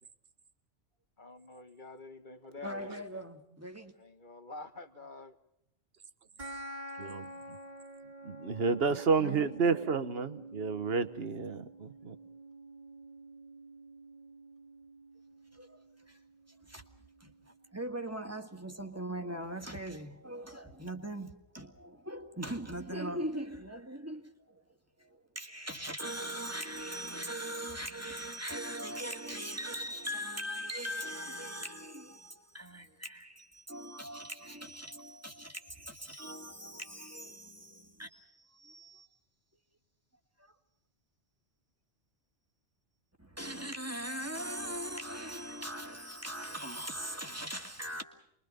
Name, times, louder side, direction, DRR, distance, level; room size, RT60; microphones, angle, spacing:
voice 1, 1.2-3.2 4.0-5.3, left 3 dB, 40° left, 1.5 m, -48 dB
voice 2, 2.6-3.9 8.9-9.5 15.5-15.8 16.1-16.2 16.7-16.8 17.2-24.6 25.0-39.1 40.4-40.5 43.2-48.0, right 1 dB, 10° right, 2.1 m, -40 dB
sound 1, 6.4-17.4, right 1 dB, 35° right, 2.4 m, -49 dB
voice 3, 7.0-7.6 8.2-12.2, right 5 dB, 50° right, 1.5 m, -31 dB
29.5 x 22.5 x 5.3 m
omnidirectional pair, 1.3 m